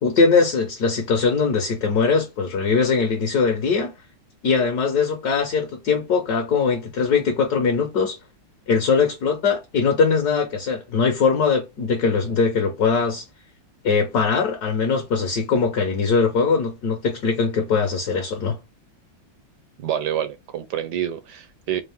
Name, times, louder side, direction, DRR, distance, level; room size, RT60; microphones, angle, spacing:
voice 1, 0.0-3.9 4.4-8.2 8.7-13.2 13.8-18.6, left 5 dB, 60° left, 1.3 m, -21 dB
voice 2, 19.8-21.8, right 10 dB, 70° right, 1.1 m, -27 dB
4.4 x 2.5 x 3.4 m
omnidirectional pair, 2.1 m